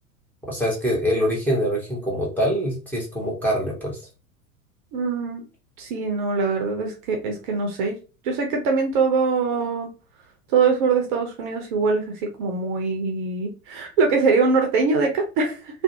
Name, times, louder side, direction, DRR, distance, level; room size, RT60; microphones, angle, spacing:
voice 1, 0.5-4.0, equal, 5° left, -4 dB, 0.7 m, -24 dB
voice 2, 4.9-5.4 5.8-8.0 8.2-9.9 10.5-15.8, right 4 dB, 35° right, 2 dB, 0.6 m, -23 dB
2.4 x 2.1 x 2.7 m, 0.32 s
figure-of-eight pair, 90°, 43 cm